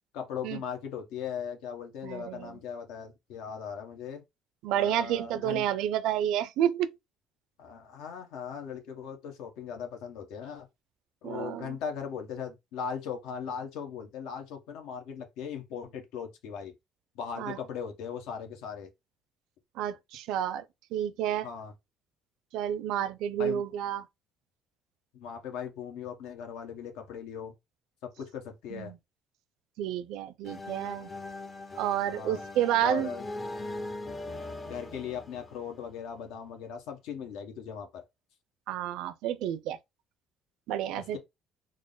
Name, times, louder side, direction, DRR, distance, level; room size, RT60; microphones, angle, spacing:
voice 1, 0.1-4.2 4.7-5.6 7.6-10.7 11.2-16.7 17.1-18.9 21.4-21.7 23.4-23.6 25.1-27.5 28.2-28.9 32.1-32.4 32.8-33.2 34.6-38.0 40.9-41.2, left 7 dB, 85° left, 1.1 m, -39 dB
voice 2, 2.0-2.6 4.6-7.0 11.2-11.8 17.4-17.6 19.8-20.6 20.9-21.5 22.5-24.1 28.7-29.0 29.8-31.1 31.8-33.1 38.7-39.8 40.7-41.2, right 11 dB, 70° right, 0.4 m, -30 dB
sound 1, 30.4-36.2, left 2 dB, 20° left, 0.4 m, -41 dB
3.7 x 2.1 x 3.8 m
cardioid pair, 165°, 0 cm